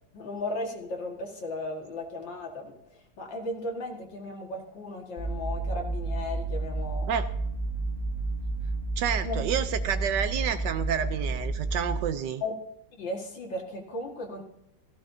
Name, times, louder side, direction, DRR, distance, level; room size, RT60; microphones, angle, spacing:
voice 1, 0.1-7.1 9.2-9.4 12.4-12.5 12.9-14.4, left 2 dB, 75° left, 1 dB, 2.6 m, -36 dB
sound 1, 5.2-12.0, right 3 dB, 40° left, 3.6 m, -31 dB
voice 2, 9.0-12.4, right 8 dB, 70° right, 11 dB, 1.3 m, -29 dB
16.5 x 14.5 x 2.7 m, 0.76 s
omnidirectional pair, 2.0 m